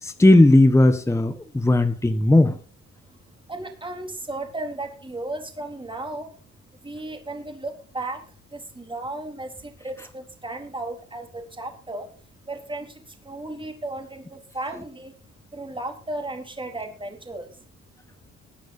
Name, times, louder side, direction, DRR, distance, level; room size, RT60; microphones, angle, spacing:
voice 1, 0.0-2.6, left 1 dB, 10° left, 8 dB, 1.2 m, -16 dB
voice 2, 3.5-6.3 6.8-8.2 8.5-12.1 12.5-15.1 15.5-17.5, right 2 dB, 15° right, 4 dB, 3.9 m, -35 dB
22.5 x 9.8 x 2.8 m, 0.40 s
cardioid pair, 90°, 30 cm